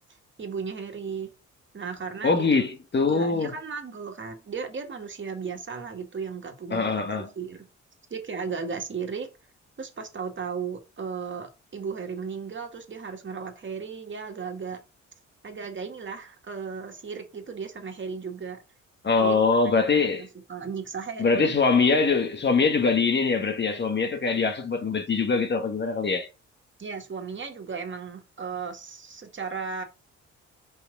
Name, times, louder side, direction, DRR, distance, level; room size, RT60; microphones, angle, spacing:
voice 1, 0.4-1.3 1.7-2.5 3.1-7.0 7.4-7.7 8.1-9.3 9.8-14.8 15.4-18.6 19.2-19.4 20.0-21.6 26.8-29.8, right 5 dB, 40° right, 2.2 m, -35 dB
voice 2, 2.2-3.5 6.7-7.3 19.0-20.3 21.2-26.3, left 4 dB, 35° left, 1.6 m, -23 dB
5.5 x 4.8 x 5.4 m
cardioid pair, 75°, 29 cm